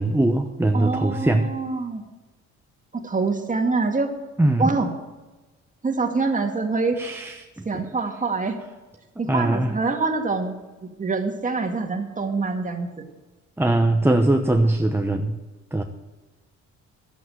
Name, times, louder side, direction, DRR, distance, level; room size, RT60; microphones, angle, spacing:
voice 1, 0.0-1.5 4.4-4.7 7.0-7.9 9.3-9.8 13.6-15.4 15.7-15.8, right 1 dB, 10° right, 4 dB, 0.9 m, -21 dB
voice 2, 0.7-2.0 2.9-4.1 4.6-4.9 5.8-7.0 7.6-8.6 9.2-10.6 10.8-13.0, right 4 dB, 25° right, 4 dB, 2.0 m, -25 dB
12.0 x 7.9 x 7.9 m, 1.2 s
cardioid pair, 90°, 30 cm